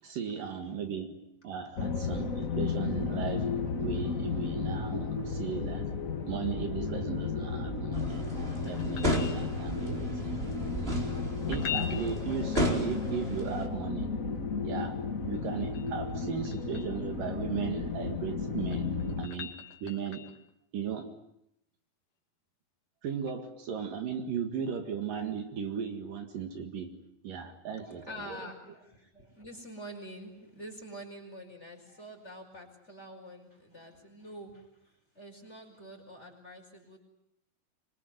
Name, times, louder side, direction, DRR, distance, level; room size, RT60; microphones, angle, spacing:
voice 1, 0.0-1.2 1.4-3.5 3.8-5.9 6.3-8.2 8.6-10.4 10.8-11.1 11.5-14.1 14.6-15.0 15.2-18.9 19.2-19.5 19.8-20.3 20.7-21.1 23.0-26.9 27.2-28.5, right 7 dB, 65° right, 6 dB, 3.4 m, -36 dB
sound 1, 1.8-19.3, left 4 dB, 75° left, 0.7 m, -33 dB
sound 2, 7.9-13.7, equal, 15° right, 4.1 m, -34 dB
sound 3, 8.7-9.9 11.4-13.2 15.3-17.0 18.4-20.5 23.3-23.4, left 9 dB, 60° left, 3.8 m, -42 dB
voice 2, 27.8-37.0, equal, 15° left, 2 dB, 5.2 m, -47 dB
25.5 x 25.5 x 9.3 m, 0.79 s
omnidirectional pair, 4.4 m